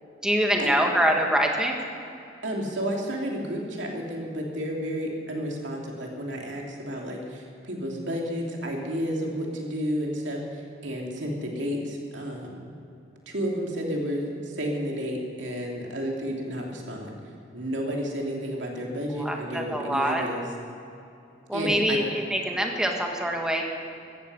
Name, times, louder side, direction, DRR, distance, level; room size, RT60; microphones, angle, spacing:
voice 1, 0.2-1.8 19.2-20.2 21.5-23.7, equal, 5° right, 1 dB, 1.7 m, -25 dB
voice 2, 2.4-12.6 13.3-17.1 17.5-20.4 21.5-22.0, equal, 75° right, -1 dB, 2.7 m, -31 dB
16.0 x 14.5 x 5.5 m, 2.6 s
head